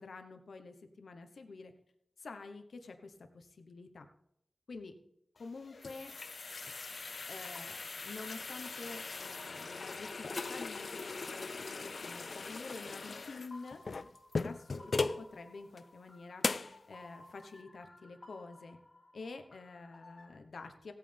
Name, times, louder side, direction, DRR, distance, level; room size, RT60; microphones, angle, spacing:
voice 1, 0.0-1.7 2.2-4.1 4.7-4.9 5.4-6.1 7.3-13.8 14.4-18.8 19.1-20.9, left 3 dB, 85° left, 6 dB, 1.2 m, -48 dB
sound 1, 5.4-15.3 15.8-15.9 16.4-16.8, left 4 dB, 70° left, 0.5 m, -39 dB
sound 2, 13.5-20.4, left 2 dB, 45° left, 2.0 m, -57 dB
16.0 x 9.1 x 3.5 m, 0.78 s
cardioid pair, 50°, 0 cm